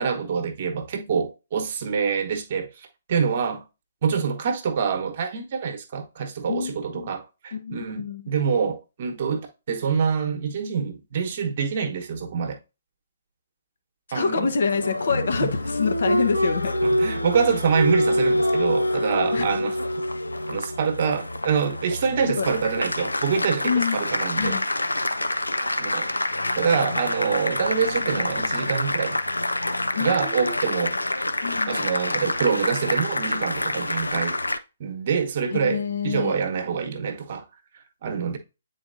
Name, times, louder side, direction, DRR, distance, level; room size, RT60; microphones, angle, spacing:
voice 1, 0.0-3.7 4.0-12.6 14.1-14.5 15.4-15.5 16.8-19.8 20.5-24.6 25.6-26.1 26.5-29.2 30.0-31.0 31.7-34.4 34.8-37.4 38.0-38.4, right 6 dB, 45° right, 1.1 m, -26 dB
voice 2, 6.5-7.1 7.5-8.2 14.1-16.7 19.3-19.5 22.4-22.5 23.6-24.1 24.4-24.7 30.0-30.6 31.4-31.8 35.5-36.4, left 5 dB, 60° left, 0.9 m, -26 dB
Applause, 14.6-34.6, left 1 dB, 85° left, 0.5 m, -26 dB
8.8 x 4.1 x 2.6 m
figure-of-eight pair, 130°, 0 cm